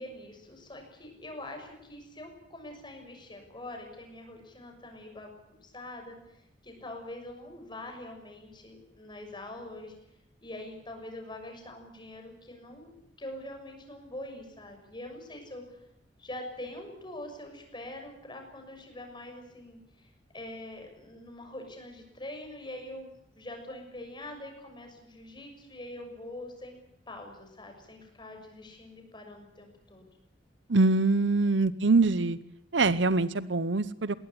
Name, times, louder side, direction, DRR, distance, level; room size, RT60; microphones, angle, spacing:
voice 1, 0.0-9.9 10.4-12.9 13.2-15.8 16.2-26.8 27.1-30.0 31.4-31.6, left 1 dB, 25° left, 3 dB, 6.5 m, -44 dB
voice 2, 30.7-32.4 32.7-34.2, right 3 dB, 80° right, 17 dB, 0.8 m, -24 dB
21.0 x 18.0 x 9.9 m, 0.80 s
head